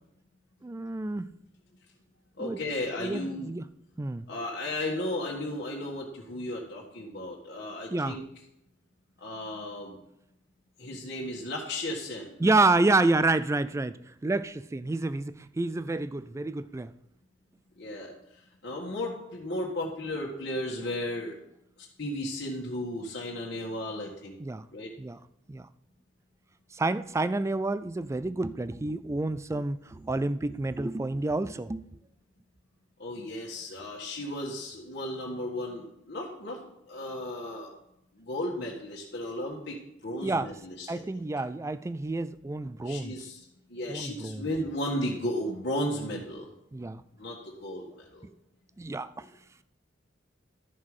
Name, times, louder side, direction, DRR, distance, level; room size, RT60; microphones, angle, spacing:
voice 1, 0.6-1.3 2.4-2.6 3.0-3.6 4.0-4.2 7.9-8.2 12.4-16.9 24.4-24.7 25.0-25.2 25.5-25.7 26.7-31.9 40.2-40.5 40.9-43.1 43.9-44.5 46.7-47.0 48.8-49.3, right 2 dB, 15° right, 15 dB, 0.3 m, -29 dB
voice 2, 2.4-3.5 4.3-8.2 9.2-10.0 10.8-12.4 17.8-18.1 18.6-21.3 22.0-24.4 24.7-24.9 33.0-36.6 36.9-37.7 38.2-39.8 40.0-41.0 42.8-43.4 43.7-46.5 47.2-48.3, left 1 dB, 60° left, -3 dB, 1.5 m, -34 dB
12.5 x 5.6 x 4.8 m, 0.82 s
head